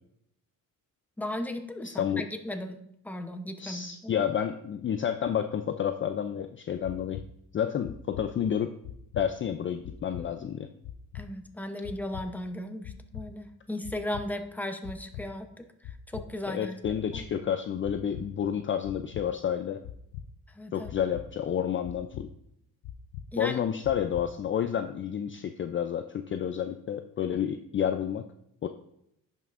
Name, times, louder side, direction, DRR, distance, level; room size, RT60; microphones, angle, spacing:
voice 1, 1.2-2.8 3.0-4.1 11.1-16.8 17.1-17.4 20.5-20.9 23.3-23.6, left 1 dB, 5° left, 6 dB, 0.8 m, -36 dB
voice 2, 1.8-2.2 3.6-7.2 7.5-8.7 9.1-10.7 16.5-19.8 20.7-22.3 23.4-28.2 28.6-28.7, left 9 dB, 35° left, 8 dB, 0.4 m, -30 dB
sound 1, 6.8-7.2 7.8-8.2 8.8-9.2 9.8-10.2 10.8-11.2 11.8-12.2 12.8-13.2 13.8-14.2 14.8-15.2 15.8-16.2 16.8-17.2 17.8-18.2 18.8-19.2 19.8-20.2 20.8-21.2 21.8-22.2 22.8-23.2 23.8-24.2, left 10 dB, 75° left, 0.6 m, -41 dB
10.5 x 5.5 x 2.5 m, 0.78 s
cardioid pair, 90°, 35 cm